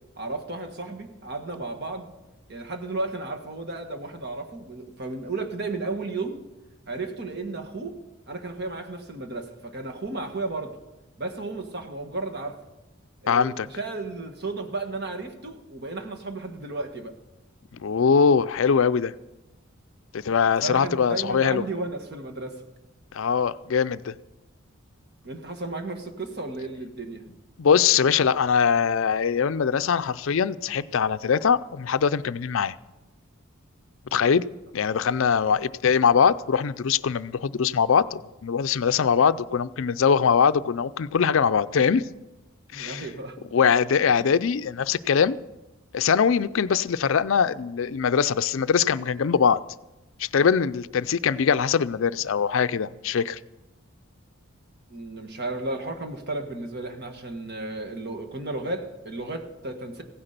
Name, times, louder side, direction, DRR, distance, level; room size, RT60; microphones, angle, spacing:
voice 1, 0.2-2.1 2.5-6.4 6.9-8.0 8.3-10.8 11.2-12.6 13.2-17.2 20.4-22.6 25.2-27.3 35.4-35.5 42.7-43.4 44.2-44.3 54.9-60.0, right 2 dB, 50° right, 1.5 m, -33 dB
voice 2, 13.3-13.7 17.7-19.1 20.1-21.6 23.1-24.1 27.6-32.7 34.1-34.4 34.7-42.0 42.7-43.0 43.5-45.4 45.9-49.6 50.2-53.4, left 6 dB, 65° left, 0.4 m, -22 dB
16.0 x 9.9 x 6.7 m
head